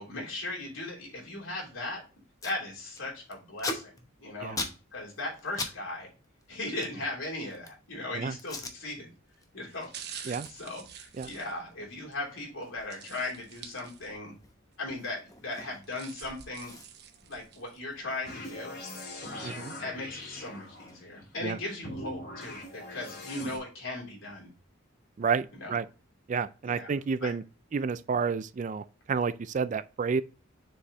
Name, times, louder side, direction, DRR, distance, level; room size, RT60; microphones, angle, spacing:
voice 1, 0.0-2.0 2.4-4.6 4.9-6.1 6.5-9.1 9.5-14.4 14.8-16.7 17.2-18.7 19.3-24.5 25.5-25.8 26.6-26.9 27.2-27.3, left 2 dB, 85° left, 3.3 m, -38 dB
Packing tape duct tape, 2.1-2.6 2.9-5.8 6.0-7.9 8.4-8.8 9.2-9.5 9.8-16.0 16.3-16.4 16.6-19.0 19.3-21.2, left 2 dB, 20° left, 0.9 m, -42 dB
sound 1, 8.8-9.0 9.7-12.2 12.9-14.4 14.7-14.8 15.6-17.8 18.3-18.4, right 8 dB, 55° right, 1.0 m, -47 dB
sound 2, 18.2-21.1 21.8-23.6, left 1 dB, 50° left, 2.6 m, -41 dB
voice 2, 19.4-19.7 21.4-21.6 25.2-25.9 26.3-27.4 27.7-30.2, right 5 dB, 40° right, 0.3 m, -30 dB
6.9 x 4.7 x 3.0 m
head